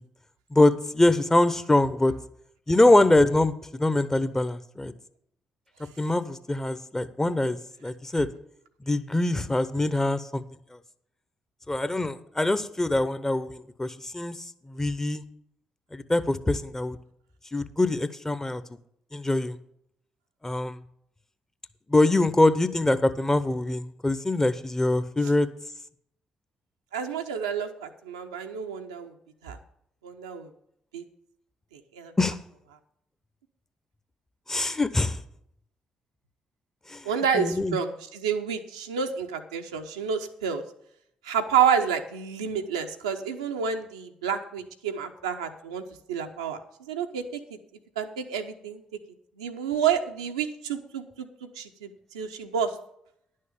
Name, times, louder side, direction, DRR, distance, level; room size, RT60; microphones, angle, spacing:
voice 1, 0.5-2.1 2.7-4.9 6.0-8.3 8.8-10.4 11.7-15.2 15.9-17.0 17.5-18.6 19.1-19.6 20.4-20.8 21.9-25.5 32.2-32.4 34.5-35.2 36.9-37.1 37.3-37.8, left 2 dB, 15° left, 13 dB, 0.9 m, -24 dB
voice 2, 26.9-29.1 29.4-29.6 30.0-30.5 30.9-31.0 31.7-32.1 37.0-40.6 41.2-45.8 46.1-47.4 48.0-48.8 49.4-51.9 52.1-52.7, right 7 dB, 80° right, 4 dB, 0.7 m, -29 dB
11.0 x 6.5 x 7.1 m, 0.72 s
figure-of-eight pair, 40°, 3 cm